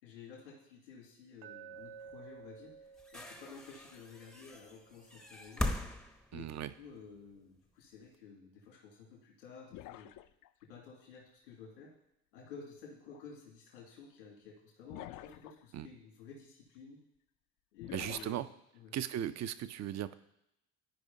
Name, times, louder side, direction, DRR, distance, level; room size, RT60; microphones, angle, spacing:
voice 1, 0.0-2.7 3.1-5.7 6.3-10.1 10.7-11.9 12.3-17.0 17.7-18.4 18.7-18.9, left 5 dB, 85° left, -3 dB, 2.6 m, -53 dB
Glass, 1.4-5.5, right 6 dB, 55° right, 0.8 m, -54 dB
sound 1, 2.1-2.2 2.9-7.2 8.1-8.2, left 1 dB, ahead, 0.6 m, -40 dB
voice 2, 6.3-6.7 15.7-15.9 17.9-18.5 18.9-20.1, right 11 dB, 35° right, 14 dB, 0.5 m, -37 dB
sound 2, 9.7-10.6 13.0-13.2 14.9-15.6 17.8-18.4, left 14 dB, 45° left, 0.4 m, -48 dB
13.5 x 4.9 x 2.8 m, 0.82 s
hypercardioid pair, 60°, 50 cm